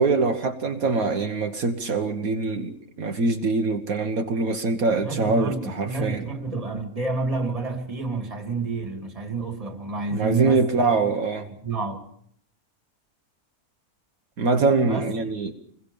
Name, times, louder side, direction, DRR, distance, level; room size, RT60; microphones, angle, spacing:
voice 1, 0.0-6.2 10.1-11.5 14.4-15.5, right 3 dB, 65° right, 1.6 m, -23 dB
voice 2, 4.9-11.0 11.5-12.0 14.8-15.1, right 3 dB, 25° right, 2.2 m, -29 dB
27.0 x 21.5 x 5.3 m
omnidirectional pair, 1.6 m